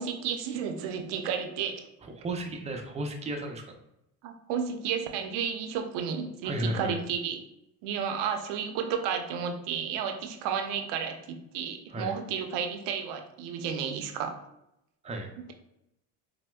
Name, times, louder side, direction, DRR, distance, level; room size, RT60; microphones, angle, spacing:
voice 1, 0.0-1.8 4.2-7.4 7.8-14.4, right 7 dB, 80° right, 5 dB, 0.6 m, -32 dB
voice 2, 2.0-3.7 6.4-7.0 11.9-12.2 15.0-15.3, right 1 dB, 15° right, 3 dB, 0.4 m, -34 dB
4.2 x 2.0 x 2.2 m, 0.83 s
supercardioid pair, 85°, 41 cm